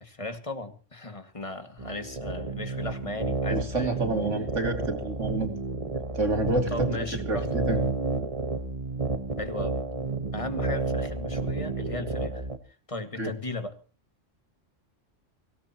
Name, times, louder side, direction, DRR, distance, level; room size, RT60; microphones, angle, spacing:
voice 1, 0.0-3.9 6.7-7.5 9.4-9.8 10.3-12.4 12.9-13.8, left 2 dB, 25° left, 8 dB, 2.0 m, -36 dB
sound 1, 1.8-12.6, right 3 dB, 30° right, 1.3 m, -31 dB
voice 2, 3.5-5.5 6.1-7.8 13.2-13.3, right 2 dB, 75° right, 5 dB, 3.0 m, -29 dB
24.5 x 17.0 x 2.9 m, 0.37 s
omnidirectional pair, 1.3 m